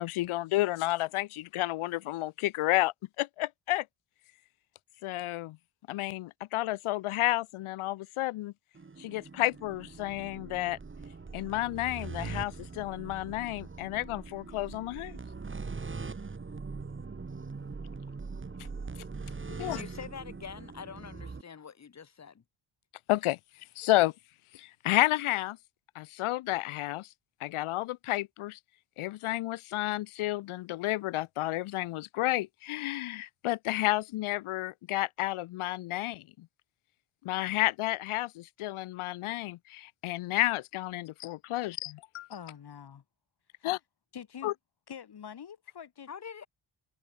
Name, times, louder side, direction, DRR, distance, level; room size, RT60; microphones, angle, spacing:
voice 1, 0.0-3.8 5.0-5.6 5.9-8.5 9.0-10.8 11.3-15.2 19.6-19.8 23.1-23.4 23.8-24.1 24.6-25.6 26.0-27.1 27.4-28.6 29.0-36.5 37.2-42.3 43.6-43.8 44.4-44.5, left 17 dB, 90° left, 0.6 m, -31 dB
sound 1, 8.7-21.4, right 4 dB, 25° right, 2.3 m, -42 dB
voice 2, 19.5-22.4 46.1-46.5, left 7 dB, 35° left, 1.3 m, -45 dB
voice 3, 42.3-43.0 43.6-43.7 44.1-44.5 44.9-46.1, left 8 dB, 50° left, 2.4 m, -45 dB
wide cardioid pair, 135°, 48 cm